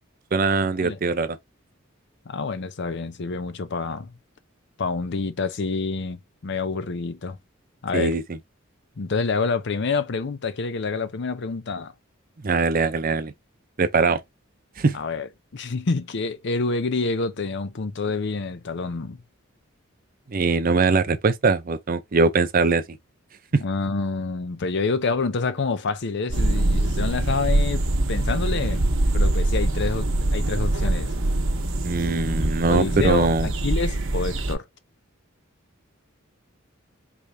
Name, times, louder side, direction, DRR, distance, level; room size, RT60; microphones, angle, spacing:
voice 1, 0.3-1.4 7.9-8.2 12.4-13.3 13.8-14.2 14.8-15.0 20.3-22.8 23.5-23.6 31.8-33.5, right 4 dB, 45° right, 0.5 m, -21 dB
voice 2, 2.3-4.1 4.8-7.4 7.8-8.2 9.0-11.9 14.9-19.2 23.6-28.8 29.1-31.1 32.7-34.7, left 4 dB, 60° left, 0.6 m, -27 dB
sound 1, 26.3-34.6, right 1 dB, 75° right, 1.2 m, -23 dB
4.9 x 3.3 x 2.6 m
head